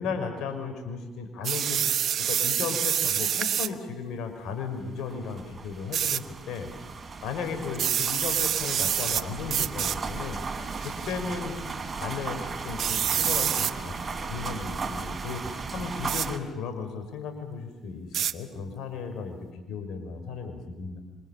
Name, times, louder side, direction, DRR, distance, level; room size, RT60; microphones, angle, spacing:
voice 1, 0.0-1.8 2.2-6.7 7.2-10.4 10.8-11.6 11.9-14.0 14.3-21.0, left 5 dB, 75° left, 6 dB, 5.8 m, -35 dB
sound 1, 1.4-3.7 5.9-6.2 7.7-9.2 9.5-10.0 10.8-11.1 12.8-13.7 16.1-16.3 18.1-18.3, right 9 dB, 60° right, 1.1 m, -26 dB
sound 2, 4.9-16.4, right 4 dB, 35° right, 3.8 m, -36 dB
27.5 x 26.0 x 7.5 m, 1.0 s
supercardioid pair, 70°, 0 cm